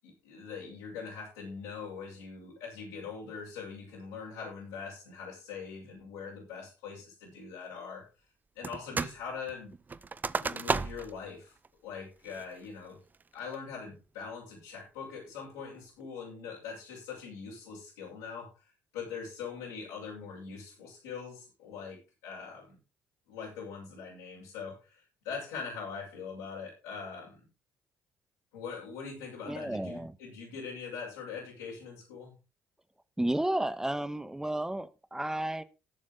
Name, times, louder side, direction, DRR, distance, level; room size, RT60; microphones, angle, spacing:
voice 1, 0.0-8.1 8.5-9.8 10.4-11.6 11.8-13.0 13.3-22.8 23.3-27.5 28.5-32.4, left 5 dB, 75° left, -7 dB, 7.9 m, -42 dB
sound 1, 8.6-9.2 9.5-11.2 11.6-11.7 12.2-12.6 13.1-13.5, right 4 dB, 30° right, 0.7 m, -33 dB
voice 2, 29.5-30.1 33.2-35.6, right 1 dB, 10° right, 14 dB, 1.4 m, -32 dB
18.0 x 7.4 x 4.0 m, 0.30 s
hypercardioid pair, 50°, 6 cm